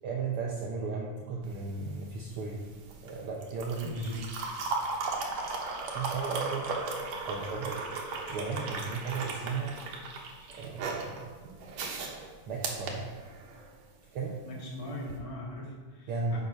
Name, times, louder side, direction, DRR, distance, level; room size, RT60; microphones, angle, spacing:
voice 1, 0.0-2.6 3.0-4.0 5.4-6.8 7.3-7.8 8.3-9.7 10.5-11.4 12.5-13.1 14.1-14.4 16.1-16.4, right 4 dB, 85° right, -1 dB, 1.2 m, -35 dB
sound 1, 1.4-13.7 15.0-15.2, right 3 dB, 65° right, 2.2 m, -36 dB
voice 2, 3.8-4.4 14.4-16.4, left 1 dB, 20° left, -2 dB, 0.9 m, -40 dB
8.1 x 6.6 x 5.4 m, 1.4 s
omnidirectional pair, 3.8 m